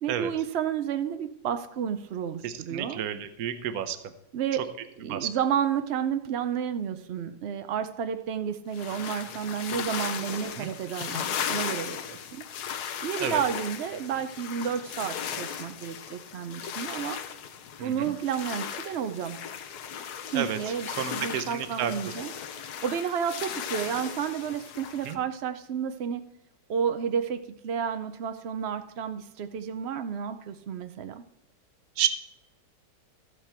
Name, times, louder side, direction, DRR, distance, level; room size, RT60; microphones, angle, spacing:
voice 1, 0.0-3.0 4.3-12.4 13.0-17.2 17.8-19.4 20.3-22.3 22.8-26.2 26.7-31.2, right 8 dB, 85° right, 9 dB, 0.5 m, -31 dB
voice 2, 2.4-4.0 5.1-5.3 10.6-10.7 13.2-13.4 17.8-18.1 20.3-20.6 20.9-21.9 25.0-25.2 32.0-32.1, right 10 dB, 60° right, 10 dB, 1.2 m, -30 dB
sound 1, 8.7-25.1, left 8 dB, 70° left, 1.3 m, -37 dB
13.5 x 8.0 x 4.4 m, 0.86 s
omnidirectional pair, 1.9 m